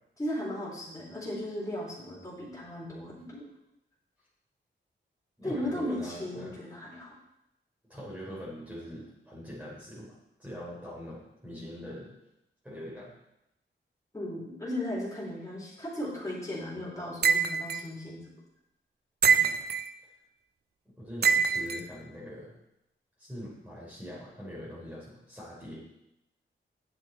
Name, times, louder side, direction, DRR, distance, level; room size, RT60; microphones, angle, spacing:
voice 1, 0.2-3.4 5.4-7.1 14.1-18.2, left 1 dB, 15° left, -6 dB, 3.7 m, -36 dB
voice 2, 5.4-6.5 7.9-12.1 12.6-13.1 19.2-19.6 21.0-22.5 23.2-25.8, equal, 5° right, -7 dB, 3.4 m, -43 dB
sound 1, 17.2-17.8 19.2-19.9 21.2-21.8, right 6 dB, 50° right, 0.5 m, -24 dB
9.1 x 7.6 x 4.4 m, 0.87 s
cardioid pair, 70°, 21 cm